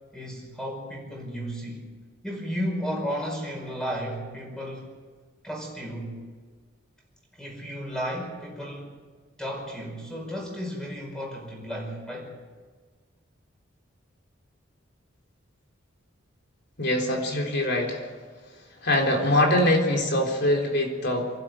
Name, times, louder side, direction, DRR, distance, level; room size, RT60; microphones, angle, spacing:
voice 1, 0.1-1.8 2.2-4.9 5.4-6.2 7.3-8.9 9.4-12.3, equal, 5° left, 1 dB, 5.1 m, -33 dB
voice 2, 16.8-18.1 18.8-21.3, left 1 dB, 55° left, 1 dB, 3.9 m, -23 dB
26.5 x 12.0 x 9.2 m, 1.5 s
head